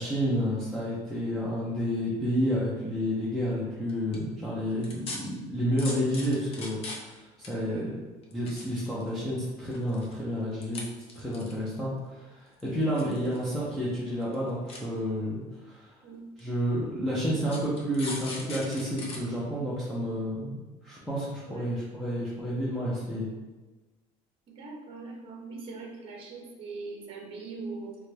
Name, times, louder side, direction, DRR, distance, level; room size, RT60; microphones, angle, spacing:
voice 1, 0.0-7.8 8.3-15.9 16.4-23.3, equal, ahead, -9 dB, 0.6 m, -30 dB
sound 1, 3.9-4.2 4.8-5.2 5.8-7.2 7.4-7.5 8.2-9.2 9.7-10.1 10.6-10.8 11.1-11.8 12.6-13.4 13.7-13.8 14.2-14.3 14.7-14.8 15.6-15.7 16.4-16.5 17.4-19.2 19.6-19.7, left 3 dB, 40° left, 0.7 m, -39 dB
voice 2, 7.5-8.0 16.0-16.2 21.5-21.7 24.5-28.0, right 4 dB, 35° right, 0 dB, 0.8 m, -41 dB
3.9 x 2.3 x 3.3 m, 1.2 s
cardioid pair, 140°, 15 cm